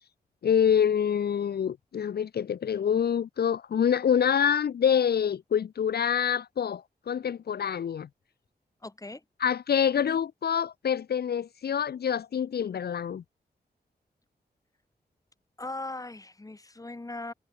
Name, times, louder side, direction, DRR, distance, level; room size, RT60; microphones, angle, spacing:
voice 1, 0.4-8.1 9.4-13.2, left 8 dB, 70° left, 0.6 m, -26 dB
voice 2, 8.8-9.2 15.6-17.3, left 2 dB, 20° left, 4.5 m, -39 dB
wide cardioid pair, 155°, 17 cm